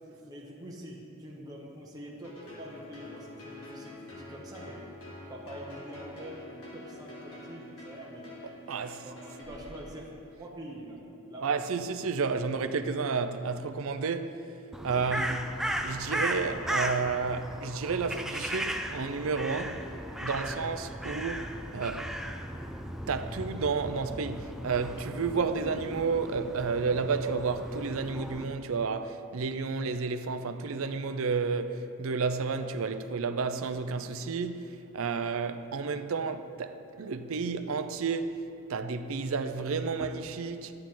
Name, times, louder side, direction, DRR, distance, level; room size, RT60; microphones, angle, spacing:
voice 1, 0.0-4.8 5.3-8.3 9.0-10.1 10.4-11.0 11.3-11.7 14.9-15.3 20.4-20.7, right 1 dB, 20° right, 1.1 m, -45 dB
sound 1, 2.2-10.3, left 2 dB, 80° left, 1.8 m, -46 dB
voice 2, 8.7-9.1 11.4-14.4 14.8-15.4 15.8-19.9 20.2-22.1 23.1-38.4 38.7-40.7, right 4 dB, 70° right, 0.5 m, -31 dB
Crow, 14.7-28.4, equal, ahead, 0.4 m, -36 dB
10.5 x 8.8 x 3.8 m
head